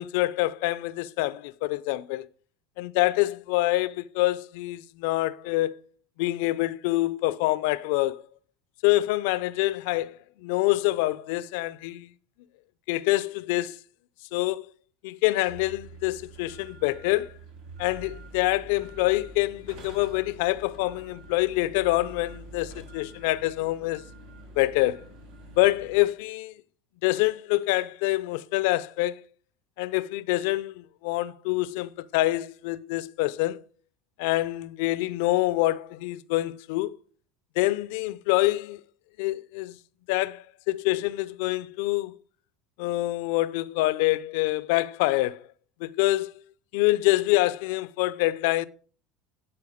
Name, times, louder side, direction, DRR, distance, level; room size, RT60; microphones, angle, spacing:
voice 1, 0.0-2.3 2.8-5.8 6.2-8.2 8.8-12.1 12.9-13.8 14.3-14.7 15.0-17.3 17.8-24.0 24.6-25.0 25.6-26.5 27.0-29.2 29.8-33.6 34.2-36.9 37.6-38.8 39.2-39.8 40.1-42.1 42.8-45.4 45.8-46.3 46.7-48.7, left 18 dB, 70° left, 0.4 m, -26 dB
sound 1, 15.5-26.0, right 2 dB, 75° right, 5.1 m, -46 dB
12.0 x 4.5 x 5.0 m
hypercardioid pair, 85°, 0 cm